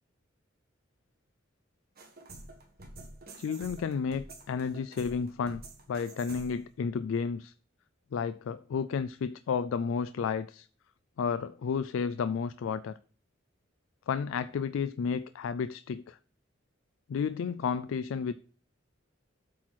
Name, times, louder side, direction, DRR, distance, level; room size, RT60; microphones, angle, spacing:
sound 1, 2.0-6.7, right 2 dB, 50° right, 1.7 m, -49 dB
voice 1, 3.4-5.6 5.9-7.5 8.1-10.7 11.2-13.0 14.1-16.2 17.1-18.3, left 6 dB, 75° left, 0.3 m, -32 dB
8.4 x 4.3 x 6.1 m
head